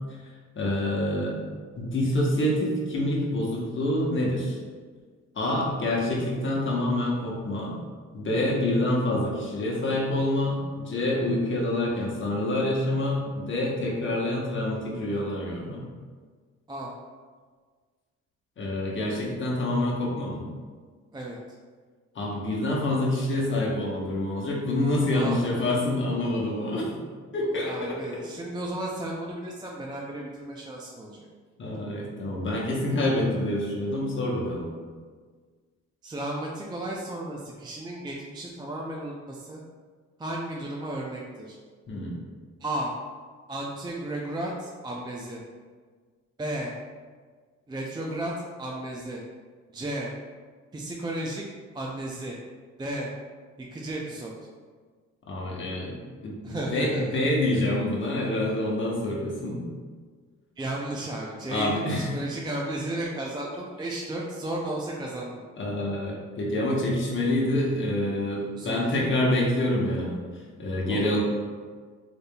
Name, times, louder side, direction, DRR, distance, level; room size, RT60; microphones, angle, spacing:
voice 1, 0.5-1.4 1.8-4.6 5.3-7.8 8.1-15.8 18.6-20.4 22.1-27.0 27.3-28.0 31.6-34.7 41.9-42.1 55.3-59.6 61.5-62.1 65.6-71.2, left 1 dB, 40° left, -3 dB, 1.0 m, -27 dB
voice 2, 25.1-25.6 27.4-31.3 36.0-39.6 40.2-41.6 42.6-42.9 43.5-45.4 46.4-46.7 47.7-49.2 49.7-50.1 50.7-51.4 51.7-52.4 52.8-53.1 53.6-54.3 56.4-57.3 60.6-65.4 68.4-69.0 70.9-71.2, right 1 dB, 15° right, -3 dB, 0.4 m, -34 dB
4.1 x 3.4 x 2.2 m, 1.5 s
cardioid pair, 90°, 30 cm